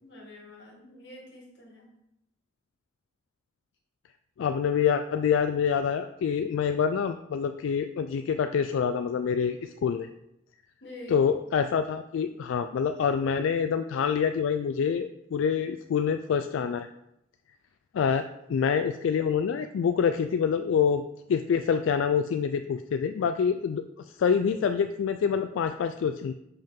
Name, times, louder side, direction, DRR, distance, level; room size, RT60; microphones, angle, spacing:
voice 1, 0.0-1.9 10.8-11.2, left 1 dB, 60° left, -1 dB, 1.7 m, -46 dB
voice 2, 4.4-10.1 11.1-16.9 17.9-18.2 18.5-21.0 21.3-26.3, left 7 dB, 85° left, 8 dB, 0.3 m, -26 dB
5.6 x 5.4 x 3.6 m, 0.84 s
head